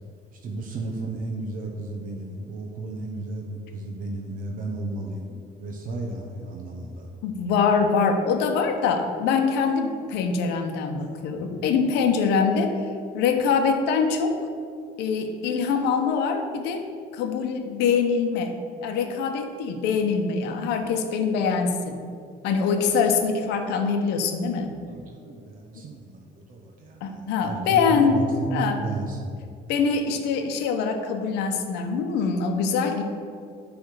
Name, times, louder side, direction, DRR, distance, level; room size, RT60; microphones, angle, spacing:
voice 1, 0.4-7.1 24.9-29.3, right 2 dB, 55° right, 0 dB, 0.9 m, -33 dB
voice 2, 7.2-12.7 13.1-14.4 15.0-16.8 17.1-18.5 18.8-22.0 22.4-24.7 27.0-28.2 28.5-28.8 29.7-33.0, left 5 dB, 90° left, 6 dB, 0.8 m, -24 dB
7.9 x 3.4 x 6.5 m, 2.3 s
cardioid pair, 110°, 17 cm